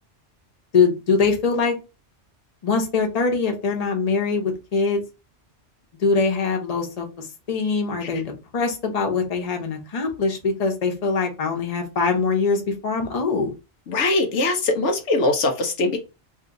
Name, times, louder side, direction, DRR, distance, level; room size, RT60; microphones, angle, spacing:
voice 1, 0.7-1.8 2.6-5.0 6.0-13.5, left 4 dB, 35° left, 3 dB, 0.9 m, -23 dB
voice 2, 13.9-16.0, left 2 dB, 80° left, 4 dB, 1.1 m, -21 dB
2.9 x 2.7 x 3.7 m, 0.28 s
omnidirectional pair, 1.2 m